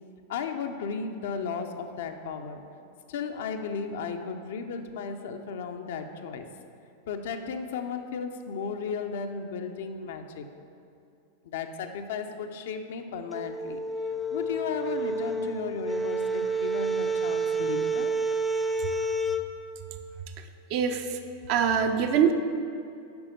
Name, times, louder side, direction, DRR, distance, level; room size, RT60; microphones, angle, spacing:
voice 1, 0.3-2.6 3.1-6.5 7.1-10.4 11.4-13.8 14.3-18.1, left 5 dB, 55° left, 6 dB, 0.6 m, -34 dB
sound 1, 13.3-19.4, right 2 dB, ahead, 0.5 m, -29 dB
voice 2, 20.7-21.2 21.5-22.3, right 7 dB, 45° right, 6 dB, 0.6 m, -23 dB
7.0 x 5.6 x 6.5 m, 2.6 s
figure-of-eight pair, 90°, 0 cm